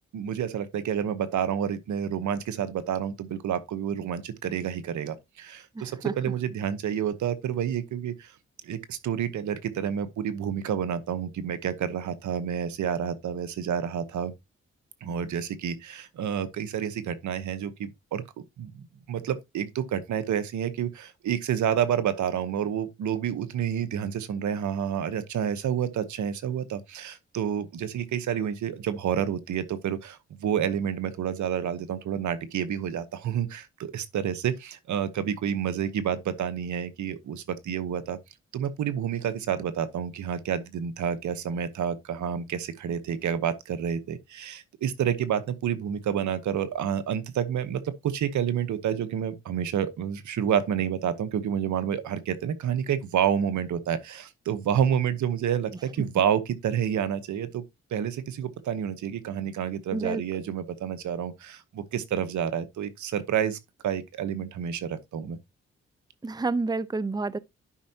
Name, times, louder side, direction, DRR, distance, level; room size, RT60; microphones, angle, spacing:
voice 1, 0.1-8.3 8.6-14.3 15.0-18.2 18.6-38.2 38.5-57.6 57.9-63.6 63.8-65.4, right 9 dB, 80° right, 1.0 m, -29 dB
voice 2, 5.8-6.1 59.9-60.2 66.2-67.4, right 3 dB, 15° right, 0.6 m, -29 dB
11.5 x 5.4 x 2.8 m
supercardioid pair, 55°, 29 cm